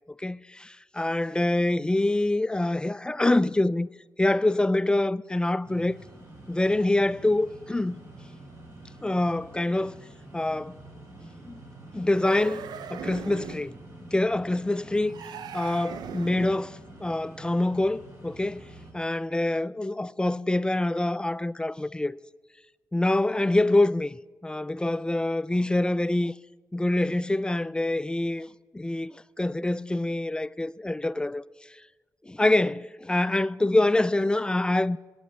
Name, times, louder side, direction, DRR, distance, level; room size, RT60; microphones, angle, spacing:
voice 1, 0.2-3.9 4.2-6.0 6.5-8.0 9.0-10.0 10.3-10.8 11.4-11.6 11.9-13.7 14.1-15.2 15.5-18.6 18.9-22.2 22.9-26.3 26.7-28.5 28.7-31.4 32.2-35.0, left 2 dB, 15° left, 0.3 m, -25 dB
sound 1, 5.6-18.9, right 2 dB, 45° right, 4.0 m, -47 dB
sound 2, 12.1-13.7 15.1-16.7, right 7 dB, 85° right, 0.5 m, -40 dB
9.7 x 8.1 x 7.9 m
cardioid pair, 55°, 7 cm